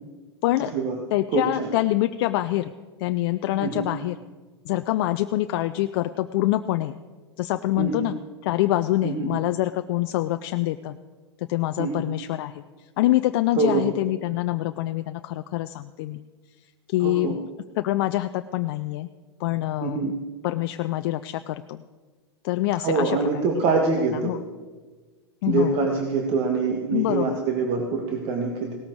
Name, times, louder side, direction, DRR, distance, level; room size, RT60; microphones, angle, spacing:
voice 1, 0.6-1.0 1.3-1.7 3.6-3.9 7.8-8.1 9.0-9.3 11.8-12.0 13.6-13.9 17.0-17.4 19.8-20.1 22.8-24.3 25.5-28.7, right 4 dB, 40° right, 2 dB, 1.7 m, -25 dB
voice 2, 1.1-2.7 3.0-4.2 4.7-7.0 7.4-8.2 8.4-11.0 11.5-12.6 13.0-16.2 16.9-17.4 17.8-19.1 19.4-20.1 20.4-21.8 22.4-23.2 23.7-23.8 24.1-24.4 25.4-25.8 26.9-27.4, left 15 dB, 55° left, 10 dB, 0.5 m, -25 dB
17.5 x 13.0 x 4.7 m, 1.4 s
hypercardioid pair, 95°, 14 cm